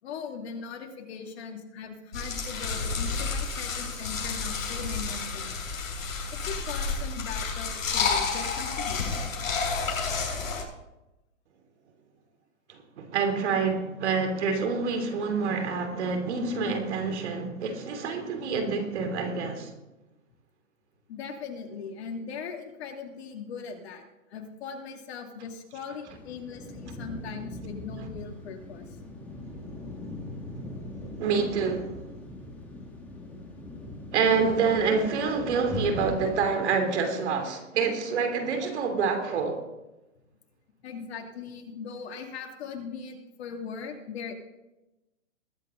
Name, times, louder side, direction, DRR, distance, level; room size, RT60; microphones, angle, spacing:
voice 1, 0.0-5.6 6.3-9.3 17.1-17.2 19.0-19.1 21.1-24.0 24.3-28.8 38.6-38.7 39.3-39.4 40.8-44.3, left 5 dB, 50° left, 2.7 m, -39 dB
sound 1, 2.1-10.6, left 4 dB, 75° left, 6.2 m, -30 dB
voice 2, 12.7-19.7 31.2-32.0 34.1-39.6, right 5 dB, 55° right, 3.1 m, -27 dB
sound 2, 26.1-36.5, left 2 dB, 5° left, 1.9 m, -40 dB
21.0 x 9.2 x 3.8 m
hypercardioid pair, 150°, 40 cm